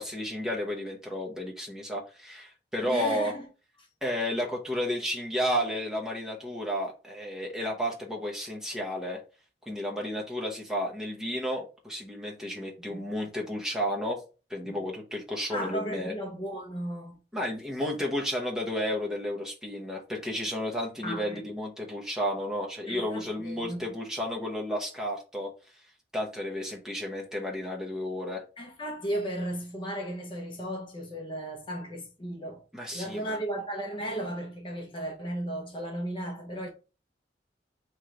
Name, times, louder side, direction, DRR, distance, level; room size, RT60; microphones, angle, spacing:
voice 1, 0.0-3.3 4.0-9.2 9.7-14.2 14.5-16.1 17.3-25.5 26.1-28.4 32.7-33.4, equal, 5° right, 0.9 m, -32 dB
voice 2, 2.8-3.5 12.9-13.0 14.6-14.8 15.5-17.2 21.0-21.4 22.9-23.8 28.6-32.6 32.9-36.7, right 1 dB, 30° left, 0.8 m, -35 dB
3.6 x 3.1 x 3.9 m
head